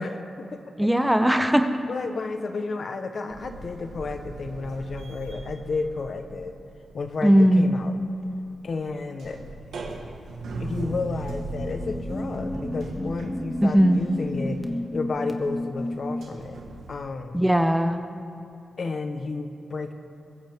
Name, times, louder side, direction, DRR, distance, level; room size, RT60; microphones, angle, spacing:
voice 1, 0.0-0.9 1.4-6.5 6.9-8.0 8.6-9.4 9.7-10.1 10.6-14.6 14.9-16.6 16.9-17.4 18.8-19.9, left 3 dB, 60° left, 6 dB, 1.2 m, -32 dB
voice 2, 0.8-1.7 7.2-7.7 13.6-14.0 17.3-18.0, equal, 5° right, 8 dB, 1.0 m, -19 dB
sound 1, 3.3-7.1 7.3-16.9, right 2 dB, 80° right, 1.6 m, -38 dB
sound 2, 11.2-16.4, left 1 dB, 15° left, 1.5 m, -32 dB
23.0 x 15.0 x 3.7 m, 2.7 s
cardioid pair, 55°, 0 cm